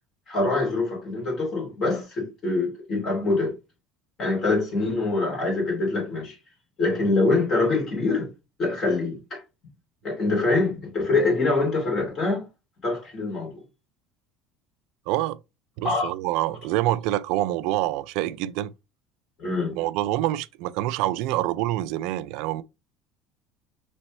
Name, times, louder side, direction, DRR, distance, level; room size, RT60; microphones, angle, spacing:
voice 1, 0.3-3.5 4.2-6.4 6.8-8.3 8.6-9.4 10.0-12.5 12.8-13.6 15.8-16.1 19.4-19.8, left 3 dB, 30° left, 2.6 m, -24 dB
voice 2, 15.1-15.4 15.8-18.7 19.8-22.6, right 15 dB, 65° right, 0.3 m, -26 dB
5.2 x 3.3 x 3.1 m
cardioid pair, 155°, 0 cm